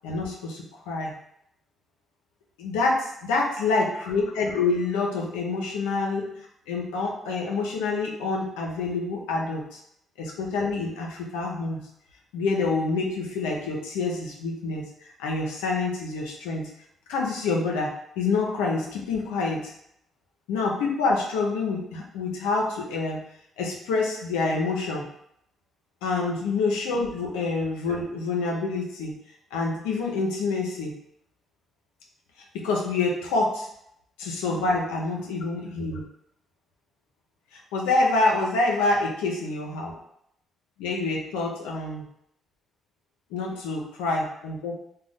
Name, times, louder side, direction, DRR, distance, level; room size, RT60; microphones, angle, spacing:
voice 1, 0.0-1.1 2.6-6.3 6.7-9.8 10.2-11.8 12.3-14.8 15.2-16.7 17.1-19.7 20.5-23.2 23.6-25.1 26.0-29.1 29.5-30.9 32.5-33.7 34.2-36.0 37.5-39.9 40.8-42.1 43.3-44.7, left 3 dB, 90° left, -1 dB, 0.5 m, -27 dB
2.5 x 2.1 x 3.3 m, 0.75 s
supercardioid pair, 60°, 0 cm